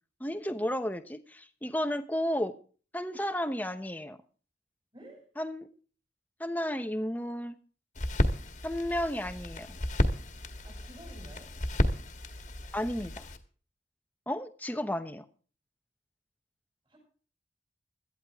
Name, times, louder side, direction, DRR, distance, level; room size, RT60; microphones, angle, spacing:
voice 1, 0.2-2.5 2.9-4.2 5.4-5.7 6.4-7.6 8.6-9.8 12.7-13.2 14.3-15.2, equal, 10° left, 9 dB, 0.9 m, -33 dB
voice 2, 4.9-5.2 10.3-11.5 16.9-17.0, right 1 dB, 25° right, -2 dB, 6.0 m, -52 dB
sound 1, 8.0-13.4, left 1 dB, 40° left, 1.7 m, -32 dB
17.5 x 13.5 x 3.6 m, 0.41 s
head